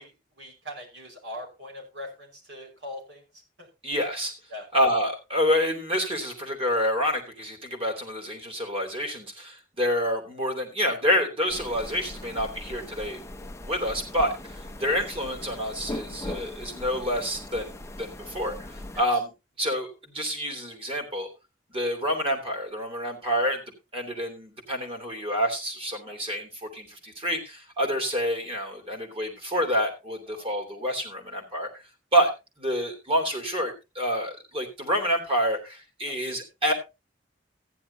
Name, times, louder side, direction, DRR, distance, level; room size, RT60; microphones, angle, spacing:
voice 1, 0.0-3.7 4.5-4.7 14.8-14.9 18.9-19.1 26.1-26.2 30.3-30.5 36.0-36.1, left 1 dB, 75° right, 2 dB, 5.4 m, -42 dB
voice 2, 3.8-4.3 4.7-13.2 13.7-19.3 19.6-21.3 21.7-23.6 23.9-31.8 32.1-32.3 32.6-36.7, equal, 30° right, 3 dB, 3.2 m, -28 dB
sound 1, 11.5-19.0, left 1 dB, 15° left, 0.6 m, -40 dB
14.5 x 10.5 x 2.8 m, 0.26 s
head